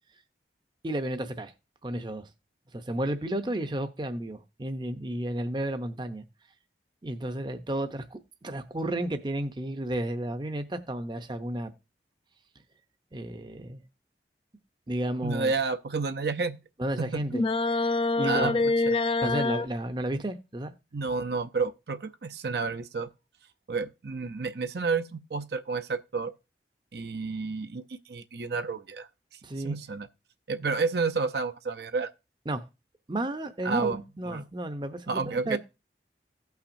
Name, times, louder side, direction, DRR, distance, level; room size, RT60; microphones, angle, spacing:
voice 1, 0.8-1.5 1.8-2.3 2.7-6.2 7.0-11.7 13.1-13.8 14.9-15.5 16.8-18.6 19.2-20.7 29.4-29.8 32.5-32.6 33.1-35.6, right 1 dB, 25° right, 0.6 m, -32 dB
voice 2, 15.2-16.6 17.0-17.2 18.3-18.6 18.9-19.0 20.9-23.1 23.7-26.3 26.9-29.1 29.6-30.1 30.5-32.1 33.6-34.0 34.3-34.5 35.1-35.6, right 4 dB, 70° right, 0.6 m, -30 dB
sound 1, 17.3-19.7, left 3 dB, 30° left, 0.4 m, -25 dB
16.5 x 5.8 x 2.6 m
head